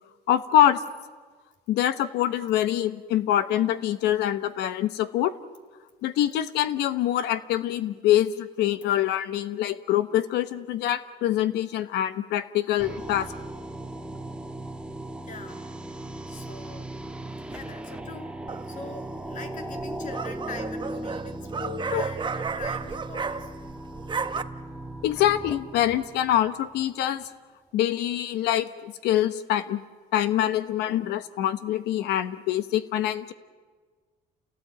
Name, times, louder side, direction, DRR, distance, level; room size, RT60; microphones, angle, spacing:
voice 1, 0.3-0.8 1.7-5.3 6.0-13.3 21.9-22.0 25.0-27.3 27.7-29.8 30.1-33.3, left 12 dB, 85° left, 13 dB, 1.1 m, -25 dB
sound 1, 12.8-26.9, right 1 dB, 5° right, 1.4 m, -38 dB
voice 2, 15.3-15.9 16.3-16.9 17.5-18.4 18.7-23.5, left 4 dB, 50° left, 6 dB, 2.5 m, -42 dB
sound 2, 18.5-18.9 19.8-23.7 24.0-24.4, right 5 dB, 25° right, 1.0 m, -32 dB
29.0 x 17.5 x 9.0 m, 1.5 s
cardioid pair, 110°, 17 cm